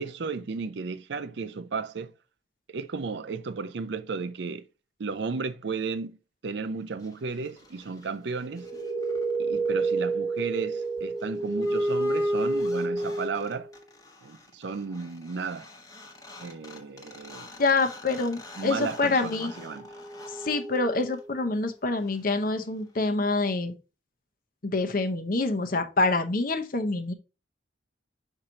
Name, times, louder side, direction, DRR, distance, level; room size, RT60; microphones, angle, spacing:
voice 1, 0.0-2.1 2.7-4.7 5.0-6.2 6.4-8.7 9.4-13.7 14.2-15.7 16.4-17.5 18.6-19.9, right 4 dB, 65° right, 0.5 m, -34 dB
sound 1, 8.4-13.8 15.7-15.8 15.9-21.4, right 2 dB, 20° left, 1.1 m, -31 dB
voice 2, 17.6-19.5 20.4-23.8 24.6-27.1, left 3 dB, 45° left, 0.8 m, -26 dB
5.7 x 4.5 x 3.7 m
head